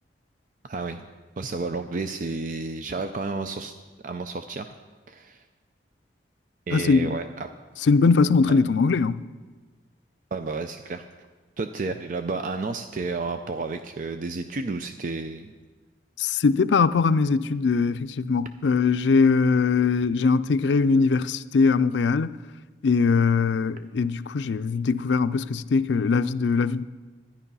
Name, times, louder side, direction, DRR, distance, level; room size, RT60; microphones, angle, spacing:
voice 1, 0.6-1.0 1.4-3.7 4.0-4.7 5.1-5.4 6.7-7.5 8.5-8.6 10.3-11.1 11.6-15.5, right 3 dB, 45° right, 0.5 m, -31 dB
voice 2, 6.7-7.1 7.9-9.2 16.2-22.3 22.8-26.9, left 4 dB, 80° left, 0.4 m, -21 dB
12.5 x 10.5 x 5.5 m
head